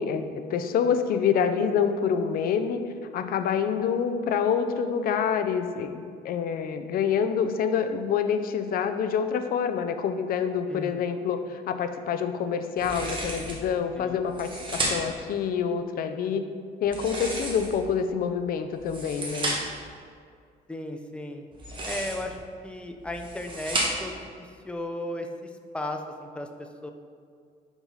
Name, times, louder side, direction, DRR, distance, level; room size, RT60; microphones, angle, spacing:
voice 1, 0.0-2.8 3.1-16.4 16.8-19.5, left 7 dB, 60° left, 8 dB, 0.6 m, -27 dB
voice 2, 10.7-11.1 14.0-14.2 20.7-21.5 21.8-26.9, left 1 dB, 5° left, 4 dB, 0.5 m, -36 dB
sound 1, 12.8-13.7 14.2-15.2 16.8-17.9 18.7-19.8 21.5-22.4 23.0-24.2, right 1 dB, 30° right, 1.3 m, -32 dB
5.3 x 4.7 x 5.5 m, 2.2 s
cardioid pair, 110°, 17 cm